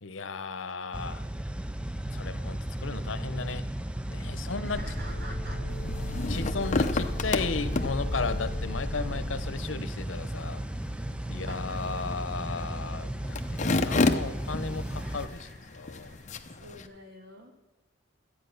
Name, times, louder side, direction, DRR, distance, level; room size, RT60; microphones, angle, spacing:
voice 1, 0.0-1.2 2.1-3.7 4.1-4.8 6.3-10.6 11.3-16.2, left 4 dB, 90° left, 12 dB, 0.8 m, -35 dB
sound 1, 0.9-15.3, right 1 dB, 5° right, 0.4 m, -35 dB
voice 2, 4.4-5.6 11.4-12.0 14.8-16.3 16.6-17.5, right 1 dB, 55° right, 2 dB, 2.4 m, -48 dB
sound 2, 4.7-9.7, left 1 dB, 35° right, 4.1 m, -35 dB
sound 3, 5.7-16.9, left 3 dB, 40° left, 0.8 m, -33 dB
12.5 x 8.7 x 6.6 m, 1.0 s
head